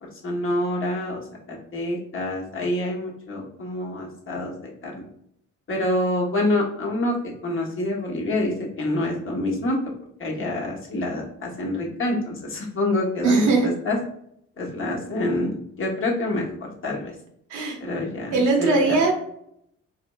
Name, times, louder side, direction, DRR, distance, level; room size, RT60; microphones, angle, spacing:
voice 1, 0.0-1.2 1.5-5.1 5.7-9.8 10.2-14.0 14.6-17.1 17.8-19.0, left 1 dB, 45° left, -2 dB, 1.1 m, -27 dB
voice 2, 13.2-13.7 17.5-17.8 18.3-19.1, right 3 dB, 80° right, 2 dB, 1.0 m, -20 dB
4.2 x 3.1 x 2.3 m, 0.73 s
cardioid pair, 90°, 30 cm